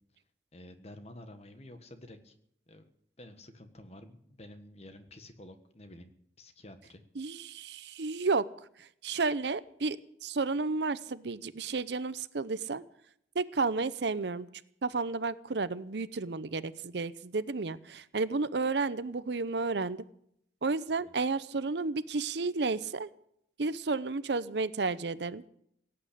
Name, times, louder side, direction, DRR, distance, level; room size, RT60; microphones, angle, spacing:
voice 1, 0.5-2.3 2.7-2.9 3.2-6.1 6.4-7.0 7.3-7.4 21.0-21.1, left 1 dB, 35° left, 8 dB, 1.5 m, -50 dB
voice 2, 7.2-8.4 9.0-12.8 13.4-14.5 14.8-20.0 20.6-23.1 23.6-25.4, right 3 dB, 70° right, 16 dB, 0.7 m, -32 dB
17.5 x 8.8 x 8.6 m, 0.71 s
head